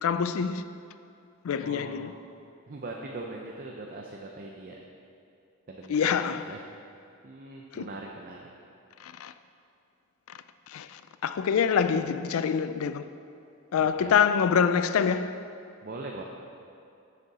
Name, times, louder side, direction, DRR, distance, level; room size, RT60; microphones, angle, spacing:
voice 1, 0.0-0.6 1.4-2.1 5.9-6.5 7.7-7.9 9.0-9.3 10.7-13.1 13.7-15.4, left 7 dB, 80° left, 0.3 m, -26 dB
voice 2, 1.6-2.2 2.7-4.7 5.7-6.6 7.2-8.4 13.8-14.1 15.8-16.2, right 2 dB, 40° right, 0.5 m, -41 dB
6.8 x 6.7 x 4.8 m
head